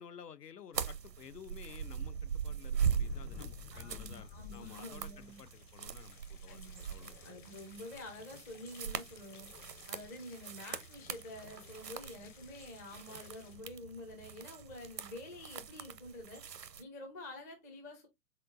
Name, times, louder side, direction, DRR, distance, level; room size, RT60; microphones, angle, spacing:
voice 1, 0.0-6.6 6.9-7.1, left 7 dB, 75° left, 0.6 m, -53 dB
sound 1, 0.7-16.8, right 7 dB, 85° right, 0.7 m, -41 dB
sound 2, 3.0-13.5, left 7 dB, 30° left, 0.8 m, -53 dB
voice 2, 3.7-5.4 6.5-9.5 9.9-16.4 16.8-18.1, left 1 dB, 10° left, 0.4 m, -48 dB
4.3 x 3.9 x 2.4 m
figure-of-eight pair, 110°, 48 cm